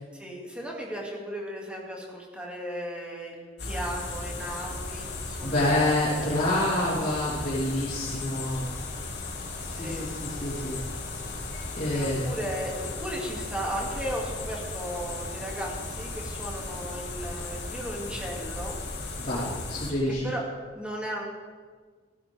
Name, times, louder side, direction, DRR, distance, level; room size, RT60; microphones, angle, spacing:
voice 1, 0.1-6.2 9.7-10.1 11.9-18.8 20.2-20.4 20.7-21.2, equal, 5° right, -3 dB, 2.4 m, -36 dB
sound 1, 3.6-19.9, left 3 dB, 55° left, 2.8 m, -36 dB
voice 2, 5.4-8.7 9.6-10.8 11.7-12.2 19.2-20.2, left 1 dB, 35° left, -11 dB, 3.3 m, -27 dB
15.5 x 15.5 x 3.6 m, 1.5 s
head